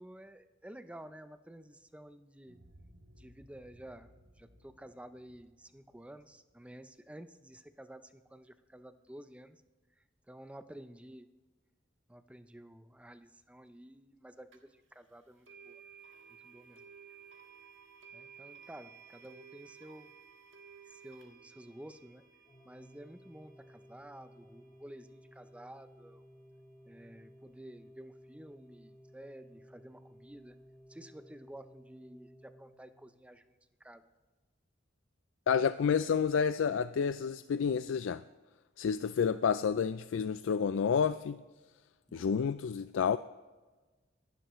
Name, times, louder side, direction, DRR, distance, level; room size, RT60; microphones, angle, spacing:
voice 1, 0.0-2.6 3.2-9.6 10.3-11.3 12.1-15.8 16.4-16.8 18.1-20.1 20.9-22.2 22.6-26.2 26.8-30.6 30.9-34.0 42.1-42.5, right 1 dB, 5° right, 10 dB, 0.5 m, -52 dB
sound 1, 2.5-7.2, equal, 90° right, 2.7 m, -61 dB
sound 2, 14.5-14.6 15.5-26.4, right 6 dB, 70° right, 1.7 m, -57 dB
Organ, 22.5-33.4, equal, 20° left, 0.9 m, -58 dB
voice 2, 35.5-38.2 38.8-41.4 42.1-43.2, left 6 dB, 75° left, 13 dB, 0.4 m, -29 dB
24.5 x 11.5 x 3.1 m, 1.3 s
head